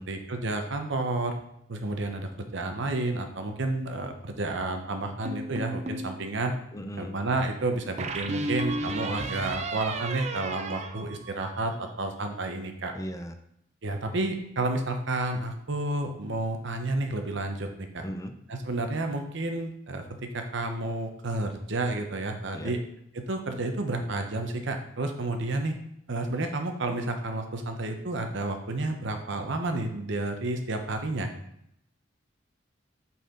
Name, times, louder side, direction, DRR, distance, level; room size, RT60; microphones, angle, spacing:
voice 1, 0.1-1.3 1.7-6.5 7.0-12.9 13.8-18.0 18.5-22.8 23.1-25.7 26.1-31.3, right 2 dB, 65° right, 5 dB, 0.9 m, -31 dB
sound 1, 5.3-6.1 8.0-11.8, right 2 dB, 35° right, 0.6 m, -33 dB
voice 2, 6.7-7.1 12.9-13.3 18.0-18.3 22.5-22.8, equal, 15° left, 7 dB, 0.6 m, -37 dB
8.2 x 4.3 x 3.8 m, 0.76 s
head